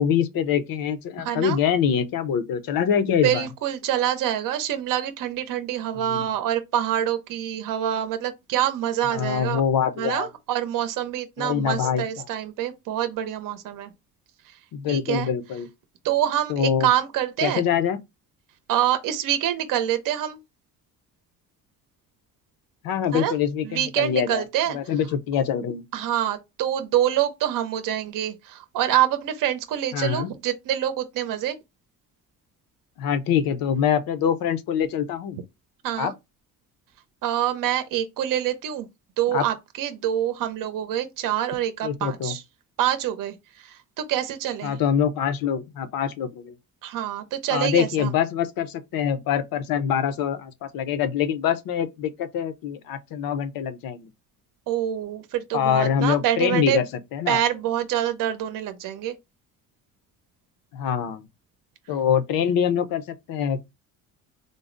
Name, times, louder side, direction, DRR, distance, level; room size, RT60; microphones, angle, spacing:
voice 1, 0.0-3.5 6.0-6.3 9.1-10.3 11.4-12.2 14.7-15.7 16.5-16.9 17.4-18.0 22.8-24.4 24.7-25.8 29.9-30.3 33.0-35.4 36.0-36.1 39.3-39.4 41.8-42.4 44.6-46.5 47.5-54.1 55.5-56.8 57.1-57.4 60.7-61.3 61.9-63.0 63.3-63.7, left 8 dB, 80° left, 0.7 m, -24 dB
voice 2, 1.2-1.6 3.2-9.6 10.0-13.9 14.9-15.3 16.0-17.6 18.7-20.4 23.1-23.3 23.6-24.8 25.9-31.6 35.8-36.1 37.2-38.9 39.2-42.4 42.8-44.7 46.8-48.1 54.7-56.8 57.3-59.2, right 11 dB, 65° right, 0.6 m, -26 dB
3.8 x 2.0 x 3.7 m
cardioid pair, 125°, 34 cm